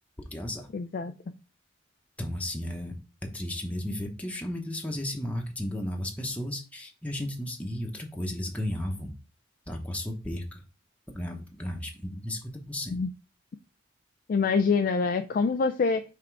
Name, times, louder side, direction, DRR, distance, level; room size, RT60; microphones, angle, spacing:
voice 1, 0.2-0.7 2.2-2.9 3.3-9.1 9.7-10.6 11.1-13.0, left 1 dB, 10° left, 0.9 m, -34 dB
voice 2, 0.7-1.1 12.9-13.1 14.3-16.0, left 4 dB, 50° left, 0.3 m, -25 dB
5.8 x 3.7 x 4.5 m
head